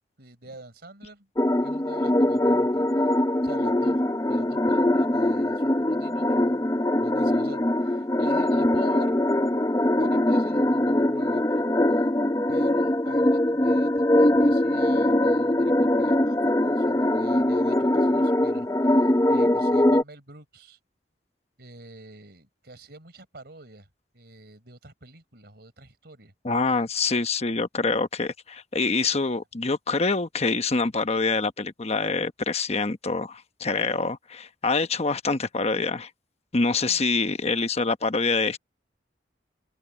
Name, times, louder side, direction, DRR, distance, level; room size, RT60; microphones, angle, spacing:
voice 1, 0.2-1.3 1.6-3.1 3.4-4.0 4.3-9.2 10.0-11.6 12.5-20.8 21.6-23.9 24.1-26.3 36.8-37.0, right 2 dB, 65° right, 4.6 m, -47 dB
sound 1, 1.4-20.0, left 1 dB, 20° left, 0.7 m, -22 dB
voice 2, 26.4-36.1 36.5-38.6, left 3 dB, 35° left, 1.1 m, -25 dB
open air
head